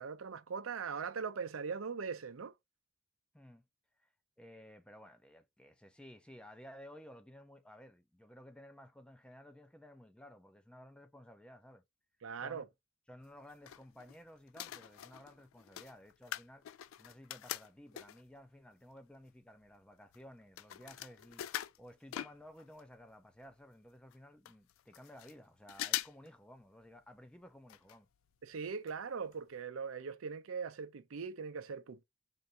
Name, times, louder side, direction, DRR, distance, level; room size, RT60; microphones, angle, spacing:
voice 1, 0.0-2.5 12.2-12.7 28.4-32.0, right 5 dB, 90° right, 0.5 m, -40 dB
voice 2, 4.4-11.8 12.4-12.7 13.1-16.7 17.0-28.1, equal, 5° left, 0.4 m, -55 dB
sound 1, 13.2-14.2 14.5-18.4 19.0-19.1 19.2-22.9 23.1-23.2 23.4-23.5 24.1-24.2 24.5-25.3 25.7-26.3 26.6-26.7 27.7-28.0 28.3-28.4 28.9-29.0 29.3-29.4, left 13 dB, 80° left, 0.3 m, -43 dB
3.9 x 2.6 x 3.2 m
head